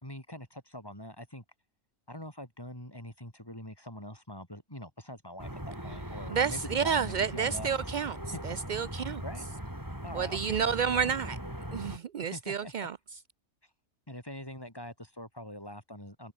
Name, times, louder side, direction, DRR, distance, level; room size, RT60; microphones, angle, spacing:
voice 1, 0.0-1.4 2.1-7.7 8.3-8.6 8.9-9.5 10.0-10.4 10.7-11.1 12.2-12.9 14.1-16.3, left 1 dB, 15° left, 5.6 m, -44 dB
sound 1, 5.4-12.0, equal, 15° right, 6.3 m, -40 dB
voice 2, 6.3-8.2 8.4-9.2 10.1-11.4 11.7-13.0, right 7 dB, 80° right, 0.4 m, -30 dB
omnidirectional pair, 1.5 m